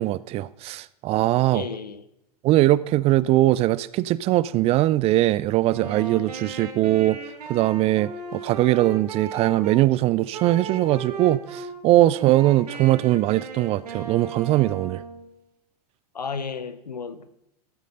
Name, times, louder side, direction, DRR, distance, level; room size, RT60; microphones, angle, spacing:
voice 1, 0.0-1.6 2.4-7.2 7.5-15.0, right 16 dB, 30° right, 0.4 m, -21 dB
voice 2, 1.5-2.0 16.1-17.3, left 5 dB, 90° left, 0.9 m, -33 dB
Wind instrument woodwind instrument, 5.6-9.8 10.3-11.7 12.1-15.3, right 4 dB, 75° right, 2.4 m, -37 dB
13.0 x 8.3 x 5.4 m
hypercardioid pair, 100°, 20 cm